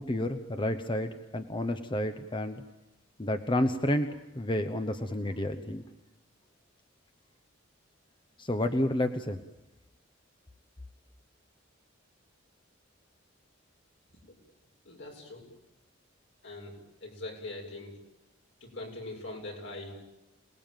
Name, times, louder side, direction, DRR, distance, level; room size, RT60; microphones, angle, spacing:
voice 1, 0.0-2.6 3.2-5.8 8.4-9.4, left 1 dB, 25° left, 7 dB, 1.0 m, -30 dB
voice 2, 14.8-15.4 16.4-16.8 17.0-17.9 18.6-19.9, left 2 dB, 70° left, 1 dB, 7.4 m, -41 dB
27.5 x 19.5 x 9.2 m, 0.97 s
head